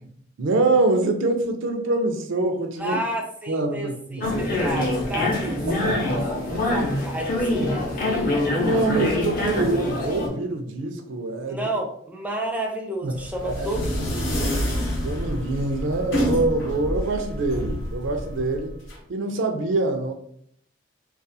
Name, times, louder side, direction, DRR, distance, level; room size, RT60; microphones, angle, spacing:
voice 1, 0.4-3.0 3.5-4.4 5.2-6.6 8.5-11.6 13.0-13.1 13.4-13.7 15.0-18.7 19.1-20.1, right 2 dB, 75° right, 6 dB, 0.4 m, -25 dB
voice 2, 2.8-6.2 6.5-8.3 11.5-14.6, right 1 dB, 10° right, 1 dB, 0.4 m, -31 dB
sound 1, 4.2-10.3, left 2 dB, 45° left, 0.6 m, -24 dB
sound 2, 13.2-19.0, equal, 85° left, 0.8 m, -28 dB
2.4 x 2.3 x 2.6 m, 0.66 s
head